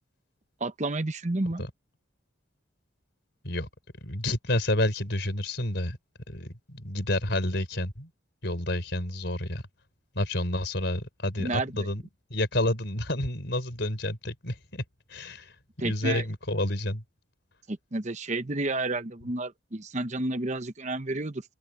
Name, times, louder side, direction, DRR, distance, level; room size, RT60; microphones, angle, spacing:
voice 1, 0.6-1.6 11.4-11.9 15.8-16.2 17.7-21.4, right 2 dB, 35° right, 1.0 m, -31 dB
voice 2, 4.0-6.0 6.3-8.1 8.4-9.6 10.1-12.0 12.3-14.8 15.1-15.5 15.8-17.0, left 1 dB, 55° left, 5.1 m, -29 dB
open air
head